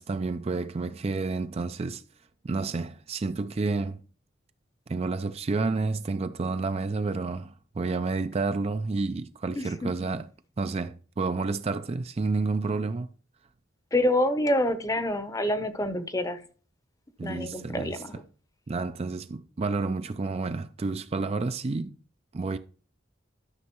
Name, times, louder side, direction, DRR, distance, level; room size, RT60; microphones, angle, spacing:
voice 1, 0.0-2.0 2.4-4.0 4.9-10.3 10.6-13.1 17.2-18.0 18.7-22.0 22.3-22.6, right 3 dB, 30° right, 0.4 m, -30 dB
voice 2, 9.6-10.1 13.9-16.4 17.2-18.2, left 1 dB, 15° left, 0.7 m, -27 dB
12.5 x 6.3 x 3.0 m
head